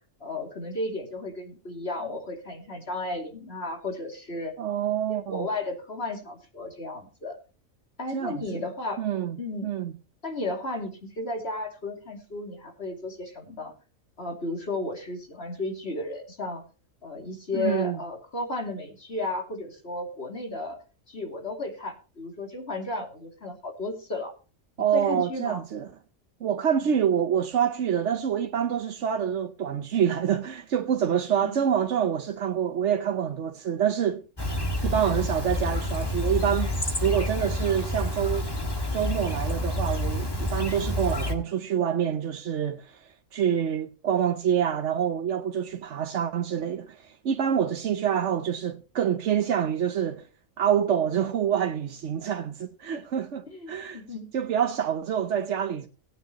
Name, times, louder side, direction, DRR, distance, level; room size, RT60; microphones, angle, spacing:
voice 1, 0.2-4.5 5.1-7.4 8.0-9.0 9.4-9.7 10.2-13.7 14.2-16.6 17.0-20.8 21.1-24.3 24.8-25.6 26.8-26.9 31.4-31.6 53.5-54.3, left 2 dB, 50° left, 2.9 m, -34 dB
voice 2, 4.6-5.5 8.1-8.6 9.0-9.4 9.6-9.9 17.5-18.0 24.8-25.9 26.4-34.2 34.8-38.5 38.9-50.3 50.6-54.0 54.3-55.9, right 9 dB, 60° right, 1.1 m, -26 dB
Chirp tweet, 34.4-41.3, left 1 dB, 20° left, 1.6 m, -28 dB
18.5 x 9.2 x 3.0 m
omnidirectional pair, 1.4 m